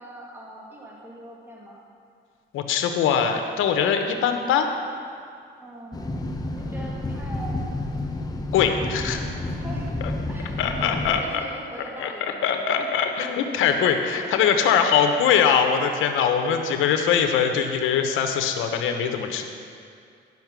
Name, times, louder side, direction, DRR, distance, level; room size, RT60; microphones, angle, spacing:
voice 1, 0.0-1.8 5.6-6.1 6.5-7.7 8.6-9.3 9.6-10.0 10.3-10.5 10.8-13.0 13.7-13.8 14.2-14.4, right 1 dB, 10° right, -4 dB, 2.0 m, -41 dB
voice 2, 2.5-4.7 8.5-9.2 10.6-11.4 12.0-12.1 12.4-19.4, left 7 dB, 90° left, 5 dB, 0.9 m, -22 dB
sound 1, 5.9-11.2, left 1 dB, 20° left, 0.8 m, -30 dB
10.5 x 5.8 x 6.0 m, 2.3 s
cardioid pair, 90°, 20 cm